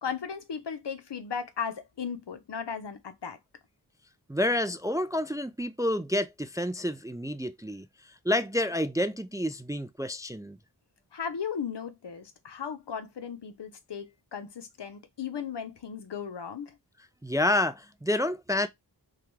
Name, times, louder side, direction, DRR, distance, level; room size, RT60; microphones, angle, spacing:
voice 1, 0.0-3.4 11.1-16.8, left 7 dB, 75° left, 0.8 m, -36 dB
voice 2, 4.3-10.6 17.2-18.7, left 1 dB, 10° right, 0.3 m, -29 dB
5.7 x 2.4 x 3.1 m
wide cardioid pair, 50°, 42 cm